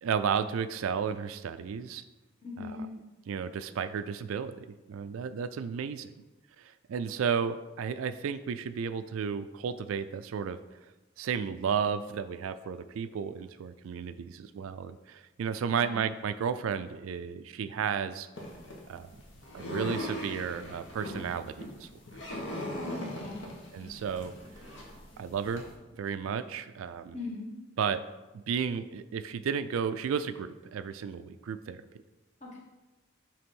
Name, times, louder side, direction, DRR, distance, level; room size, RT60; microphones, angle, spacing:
voice 1, 0.0-2.0 3.3-6.1 6.6-10.6 11.2-18.3 18.9-19.2 19.5-21.9 23.7-24.3 25.2-25.6 26.0-27.1 27.8-28.0 28.3-31.9, right 7 dB, 80° right, 12 dB, 0.3 m, -33 dB
voice 2, 2.4-2.9 15.7-16.0 22.7-23.4 27.1-27.5 32.4-32.6, left 3 dB, 35° left, -4 dB, 1.5 m, -40 dB
sound 1, 18.3-25.7, left 1 dB, 60° left, 1.3 m, -40 dB
6.8 x 3.5 x 5.3 m, 1.1 s
head